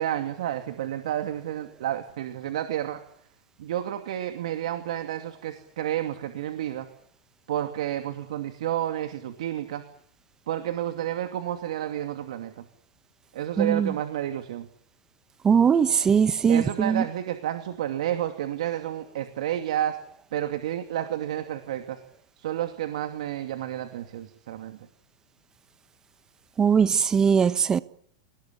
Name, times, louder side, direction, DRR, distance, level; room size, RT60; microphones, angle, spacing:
voice 1, 0.0-3.0 3.6-6.9 7.5-9.8 10.5-12.6 13.3-14.7 16.5-20.0 20.3-22.0 22.4-24.8, right 11 dB, 80° right, 2.6 m, -30 dB
voice 2, 13.6-13.9 15.4-17.0 26.6-27.8, right 7 dB, 20° right, 1.1 m, -20 dB
29.0 x 19.0 x 8.4 m
supercardioid pair, 150°, 4 cm